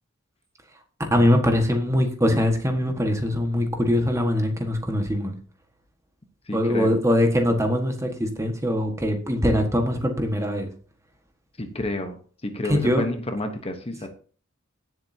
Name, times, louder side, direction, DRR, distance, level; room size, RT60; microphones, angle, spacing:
voice 1, 1.1-5.3 6.5-10.7 12.7-13.0, left 1 dB, 15° right, 4 dB, 1.6 m, -22 dB
voice 2, 6.5-7.0 11.6-14.1, left 2 dB, 30° left, 6 dB, 1.1 m, -30 dB
17.0 x 7.7 x 2.8 m, 0.40 s
head